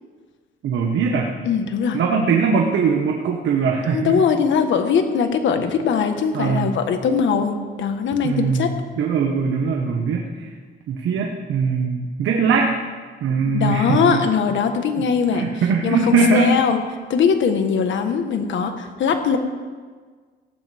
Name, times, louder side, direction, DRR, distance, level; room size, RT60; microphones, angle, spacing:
voice 1, 0.6-1.3 1.9-4.2 6.3-6.7 8.2-8.7 9.0-10.5 10.9-12.8 13.2-14.2 15.0-16.6, right 5 dB, 75° right, 1 dB, 1.4 m, -21 dB
voice 2, 1.5-2.0 3.9-8.7 13.5-15.5 15.8-16.8 17.1-19.4, left 6 dB, 70° left, 7 dB, 1.4 m, -21 dB
17.0 x 15.0 x 3.6 m, 1.5 s
cardioid pair, 90°, 20 cm